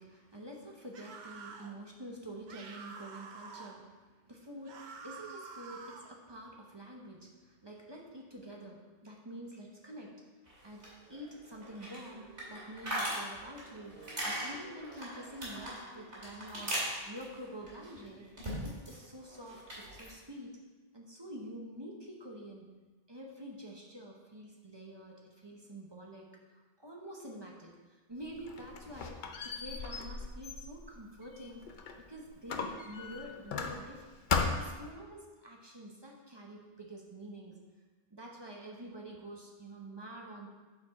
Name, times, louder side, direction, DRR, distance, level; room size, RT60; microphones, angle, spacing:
voice 1, 0.0-10.1 10.6-10.8 11.1-14.0 14.2-18.3 18.6-19.6 19.9-20.5 20.9-22.7 23.1-31.6 32.0-34.0 34.4-37.6 38.1-40.5, right 1 dB, 25° right, -1 dB, 0.8 m, -47 dB
sound 1, 0.9-1.7 2.5-3.8 4.6-6.2, right 4 dB, 50° right, 0.6 m, -48 dB
sound 2, 10.5-19.0 19.3-20.1, right 1 dB, 70° right, 2.5 m, -40 dB
Squeak, 28.2-32.0 32.5-34.0 34.3-34.9, left 5 dB, 55° left, 0.6 m, -37 dB
8.4 x 4.5 x 4.1 m, 1.3 s
omnidirectional pair, 1.2 m